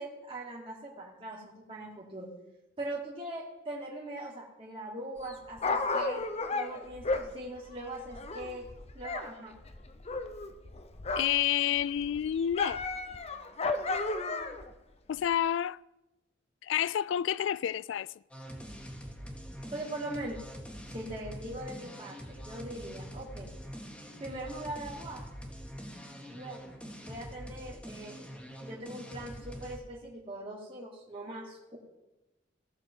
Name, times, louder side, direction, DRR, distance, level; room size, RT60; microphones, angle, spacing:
voice 1, 0.0-2.3 2.8-6.2 6.5-8.7 8.9-9.5 19.7-20.4 20.9-23.5 24.2-25.2 26.3-26.7 27.0-28.1 28.6-31.8, right 1 dB, 30° right, 2.2 m, -41 dB
Dog, 5.2-9.3 9.5-11.5 11.8-14.7 15.3-15.4, left 3 dB, 35° left, 0.7 m, -34 dB
voice 2, 11.2-12.8 15.1-15.8 16.6-18.1, left 10 dB, 70° left, 0.3 m, -29 dB
sound 1, 18.3-29.8, equal, 5° left, 1.7 m, -44 dB
17.5 x 6.7 x 4.6 m
head